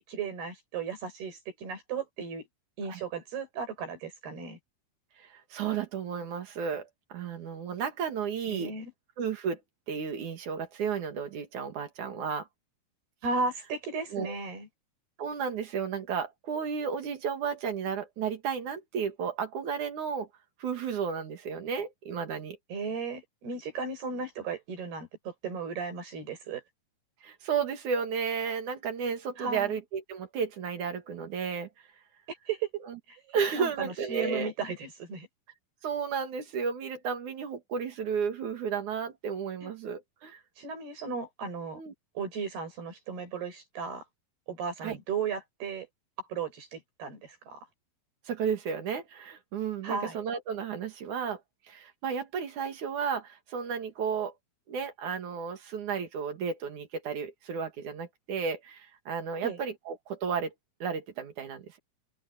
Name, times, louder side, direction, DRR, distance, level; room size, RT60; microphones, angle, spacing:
voice 1, 0.0-2.5 2.8-4.6 8.5-8.9 13.2-14.7 22.7-26.6 29.4-29.7 32.3-32.7 33.1-35.3 39.6-39.7 40.6-41.8 42.2-44.1 44.5-45.9 46.3-47.7 49.8-50.2 59.4-59.6, right 5 dB, 85° right, 7.9 m, -35 dB
voice 2, 5.2-8.7 9.2-9.6 9.9-12.5 14.1-14.3 15.2-20.3 20.6-22.6 27.2-31.7 32.9-33.0 33.3-34.5 35.8-40.4 41.7-41.9 44.8-45.0 48.3-51.4 51.7-54.3 54.7-60.5 60.8-61.8, right 6 dB, 55° right, 3.3 m, -33 dB
open air
omnidirectional pair, 4.4 m